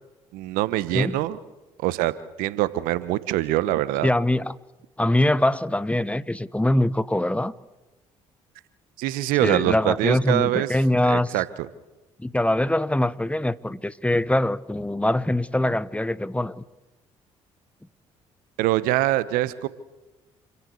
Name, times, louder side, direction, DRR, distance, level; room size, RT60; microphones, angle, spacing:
voice 1, 0.3-1.4 1.8-2.1 2.4-4.1 9.0-10.7 11.1-11.5 18.6-19.7, right 15 dB, 70° right, 1.1 m, -24 dB
voice 2, 4.0-4.5 5.0-7.5 9.4-11.3 12.2-16.6, left 1 dB, 10° left, 1.0 m, -23 dB
28.5 x 16.0 x 8.4 m
hypercardioid pair, 50°, 15 cm